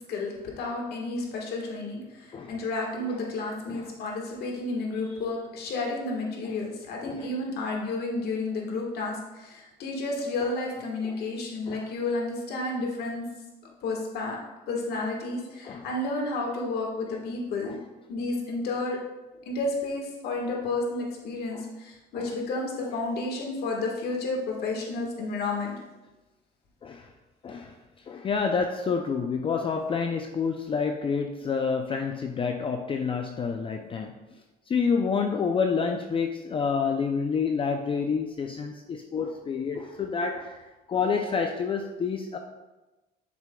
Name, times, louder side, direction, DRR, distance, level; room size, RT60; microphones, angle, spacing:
voice 1, 0.1-13.3 13.8-14.4 14.7-17.7 18.1-19.0 19.4-25.7, left 2 dB, 70° left, -1 dB, 1.5 m, -31 dB
voice 2, 27.4-27.8 28.1-34.1 34.7-42.4, left 5 dB, 30° left, 4 dB, 0.4 m, -28 dB
7.2 x 6.0 x 2.2 m, 1.1 s
cardioid pair, 110°, 17 cm